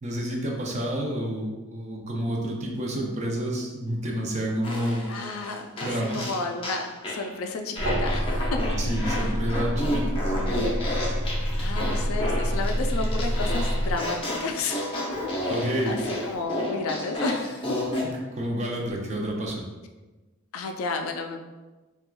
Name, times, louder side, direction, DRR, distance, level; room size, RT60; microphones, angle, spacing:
voice 1, 0.0-5.0 5.8-6.3 8.8-10.5 15.5-16.0 18.3-19.7, equal, 35° right, -1 dB, 0.5 m, -29 dB
Fart, 4.6-7.3 7.8-18.1, left 1 dB, 25° left, 0.5 m, -31 dB
voice 2, 5.1-5.9 6.1-8.6 9.2-9.3 11.6-14.8 15.4-15.5 15.8-16.0 16.2-17.6 20.5-21.4, left 3 dB, 75° left, 4 dB, 0.4 m, -32 dB
sound 1, 7.8-13.9, equal, 60° right, 1.2 m, -27 dB
4.4 x 2.3 x 2.2 m, 1.2 s
head